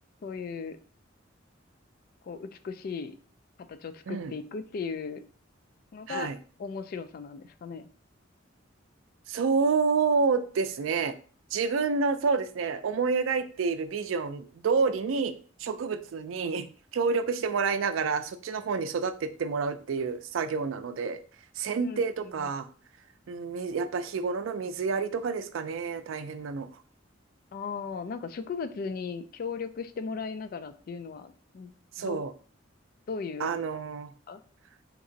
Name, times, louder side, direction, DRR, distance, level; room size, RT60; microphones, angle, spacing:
voice 1, 0.2-0.8 2.2-3.1 3.7-5.2 5.9-6.3 6.6-7.9 21.8-22.0 22.4-22.5 27.5-31.7 32.0-32.2 33.1-33.5 34.3-34.4, left 5 dB, 50° left, 10 dB, 0.3 m, -37 dB
voice 2, 6.1-6.4 9.3-11.1 11.5-15.3 15.6-16.7 16.9-21.2 21.6-22.7 23.3-26.7 32.0-32.3 33.4-34.1, right 5 dB, 85° right, 10 dB, 0.4 m, -28 dB
2.9 x 2.5 x 3.8 m, 0.42 s
head